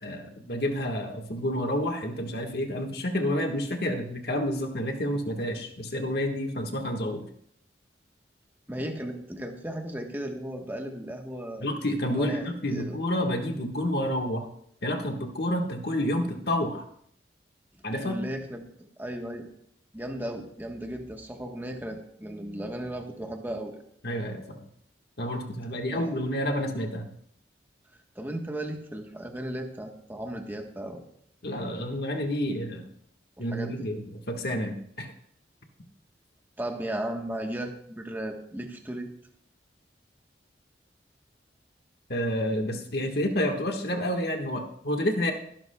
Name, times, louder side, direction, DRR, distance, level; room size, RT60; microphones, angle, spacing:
voice 1, 0.0-7.2 11.6-14.5 14.8-16.8 17.8-18.2 24.0-24.6 25.2-27.1 31.4-32.9 33.4-35.1 42.1-45.3, left 1 dB, 60° left, 3 dB, 1.5 m, -29 dB
voice 2, 8.7-11.7 12.2-13.0 18.0-18.6 19.0-19.5 19.9-23.8 25.9-26.1 28.1-31.0 33.4-33.9 36.6-39.1, right 1 dB, 10° right, 2 dB, 1.2 m, -35 dB
20.0 x 12.0 x 2.3 m, 0.68 s
head